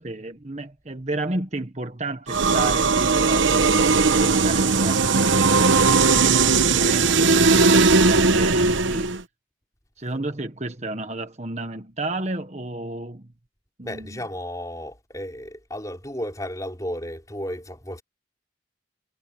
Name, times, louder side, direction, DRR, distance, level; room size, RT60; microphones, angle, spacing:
voice 1, 0.0-9.1 10.0-13.3 13.8-14.2, right 2 dB, 35° right, 1.4 m, -32 dB
sound 1, 2.3-9.2, right 4 dB, 85° right, 1.0 m, -18 dB
voice 2, 13.8-18.0, equal, 20° left, 4.8 m, -33 dB
head